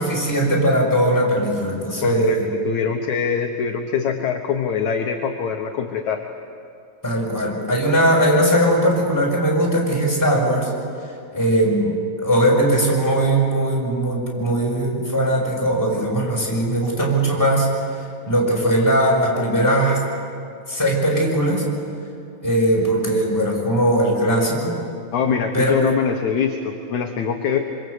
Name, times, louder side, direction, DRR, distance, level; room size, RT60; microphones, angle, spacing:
voice 1, 0.0-2.5 7.0-10.7 11.3-17.7 18.3-20.0 20.7-21.6 22.4-24.8 25.5-25.9, right 1 dB, 5° left, -3 dB, 5.8 m, -19 dB
voice 2, 2.0-2.4 2.7-6.2 25.1-27.6, left 7 dB, 65° left, 3 dB, 2.0 m, -23 dB
27.0 x 24.5 x 8.1 m, 2.5 s
omnidirectional pair, 4.7 m